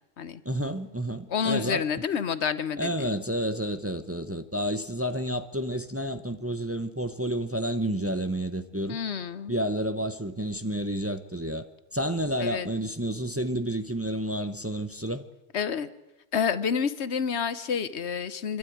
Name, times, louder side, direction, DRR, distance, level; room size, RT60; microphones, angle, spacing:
voice 1, 0.4-1.8 2.8-9.0 9.5-11.7 11.9-15.2, equal, 15° right, 0.8 m, -30 dB
voice 2, 1.3-3.1 8.9-9.6 12.4-12.7 15.5-15.9 16.3-18.6, left 6 dB, 80° left, 1.2 m, -29 dB
27.0 x 12.0 x 9.3 m
omnidirectional pair, 1.1 m